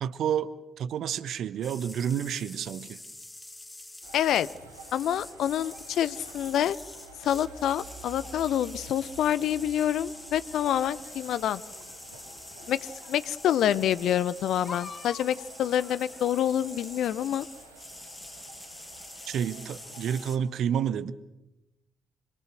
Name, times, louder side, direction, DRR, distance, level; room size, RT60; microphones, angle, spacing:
voice 1, 0.0-3.0 19.3-21.1, right 8 dB, 60° right, 1.2 m, -30 dB
sound 1, 1.6-20.4, left 2 dB, 15° left, 3.1 m, -46 dB
sound 2, 4.0-16.6, left 5 dB, 45° left, 4.3 m, -52 dB
sound 3, 4.0-20.3, right 3 dB, 90° right, 2.6 m, -50 dB
voice 2, 4.1-4.5 4.9-6.8 7.2-11.6 12.7-17.5, left 10 dB, 60° left, 0.8 m, -27 dB
26.0 x 26.0 x 6.4 m
figure-of-eight pair, 40°, 0 cm